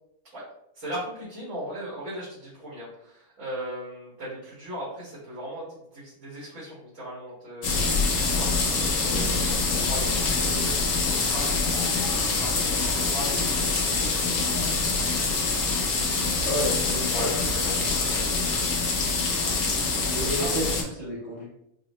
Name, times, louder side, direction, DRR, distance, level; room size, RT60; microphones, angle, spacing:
voice 1, 0.7-11.0 11.3-14.5 16.6-18.6 20.4-20.5, equal, 60° right, -10 dB, 1.8 m, -38 dB
sound 1, 7.6-20.8, left 3 dB, 85° left, 1.2 m, -25 dB
voice 2, 16.3-17.3 19.7-21.5, equal, 30° right, -8 dB, 0.9 m, -32 dB
4.7 x 2.0 x 2.9 m, 0.81 s
omnidirectional pair, 1.5 m